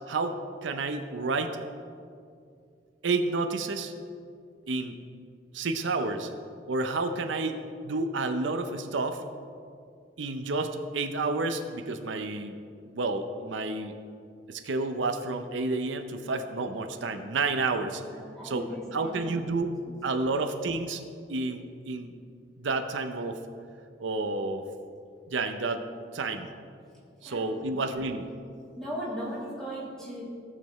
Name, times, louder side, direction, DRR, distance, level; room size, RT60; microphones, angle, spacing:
voice 1, 0.1-1.6 3.0-3.9 4.7-4.9 5.5-6.3 6.7-9.2 10.2-12.6 12.9-13.9 14.5-18.0 18.4-21.0 21.3-22.1 22.6-23.4 24.0-24.6 25.3-25.8 26.1-26.5 27.2-28.3, right 3 dB, 90° right, 7 dB, 0.6 m, -30 dB
voice 2, 18.1-19.4 19.9-20.0 27.2-28.0 28.8-30.2, equal, 5° left, -8 dB, 2.6 m, -38 dB
16.5 x 6.8 x 3.1 m, 2.3 s
head